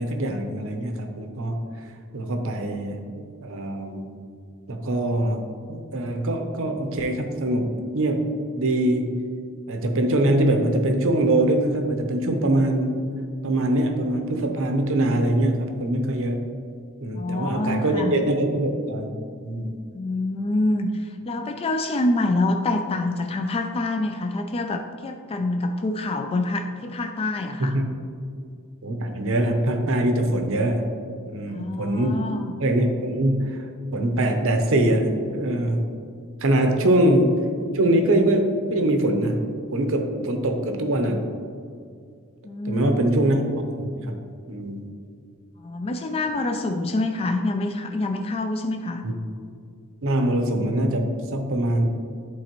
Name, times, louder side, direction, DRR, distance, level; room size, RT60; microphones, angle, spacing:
voice 1, 0.0-1.6 2.1-4.1 4.7-9.2 9.7-13.0 13.4-16.5 17.0-19.1 19.4-19.8 27.6-27.9 28.8-31.0 31.3-32.3 32.6-33.6 33.9-35.9 36.4-37.5 37.7-41.3 42.6-43.4 43.7-44.2 44.5-44.9 49.0-49.1 50.0-51.9, right 1 dB, 65° right, 5 dB, 0.8 m, -23 dB
voice 2, 17.1-18.1 19.9-27.7 31.5-32.5 42.4-43.2 45.6-49.0, left 2 dB, 25° left, 4 dB, 0.3 m, -26 dB
11.0 x 4.1 x 3.0 m, 2.3 s
head